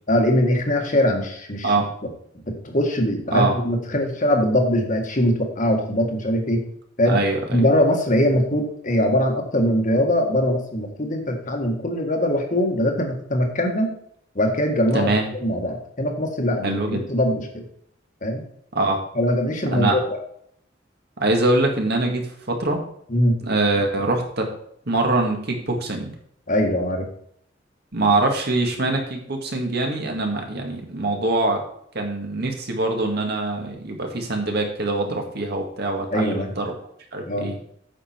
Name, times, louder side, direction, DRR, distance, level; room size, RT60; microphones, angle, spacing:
voice 1, 0.1-1.7 2.5-6.6 7.0-7.2 7.5-13.9 14.3-15.1 15.4-17.6 18.2-18.4 19.1-20.0 23.1-23.4 26.5-27.1 36.1-36.5 37.3-37.5, left 1 dB, 40° left, 3 dB, 1.7 m, -21 dB
voice 2, 7.1-7.7 14.9-15.2 16.6-17.1 18.7-19.0 19.7-20.0 21.2-22.8 23.4-24.5 24.9-26.1 27.9-31.6 31.9-36.7 37.1-37.6, right 2 dB, 55° right, 2 dB, 2.0 m, -23 dB
8.9 x 7.0 x 4.4 m, 0.68 s
head